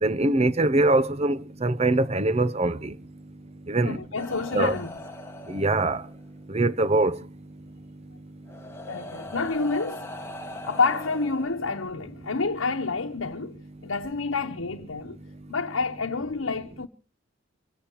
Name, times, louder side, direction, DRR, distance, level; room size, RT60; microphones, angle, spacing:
voice 1, 0.0-2.9 3.7-4.0 4.5-4.8 5.5-6.0 6.5-7.2, right 2 dB, 30° right, 0.7 m, -23 dB
voice 2, 3.8-4.9 8.9-10.1 10.6-15.2 15.5-16.9, left 4 dB, 90° left, 1.0 m, -28 dB
sound 1, 4.2-6.3 7.6-7.7 8.5-12.1 13.1-13.3, left 1 dB, 15° left, 1.4 m, -41 dB
25.5 x 17.0 x 3.0 m
head